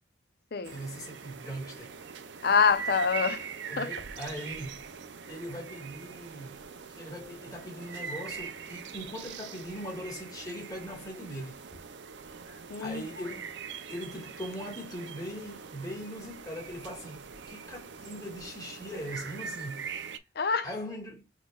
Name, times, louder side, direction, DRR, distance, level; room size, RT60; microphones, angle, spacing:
voice 1, 0.6-2.0 3.7-4.8 5.2-6.6 6.9-11.8 12.4-13.5 13.9-19.9 20.6-21.3, equal, 20° left, 1.7 m, -40 dB
sound 1, 0.6-20.2, right 6 dB, 65° right, 0.5 m, -42 dB
voice 2, 2.4-3.5 3.8-3.9 12.7-13.0 20.4-20.7, left 5 dB, 50° left, 0.5 m, -25 dB
6.0 x 3.1 x 2.3 m
head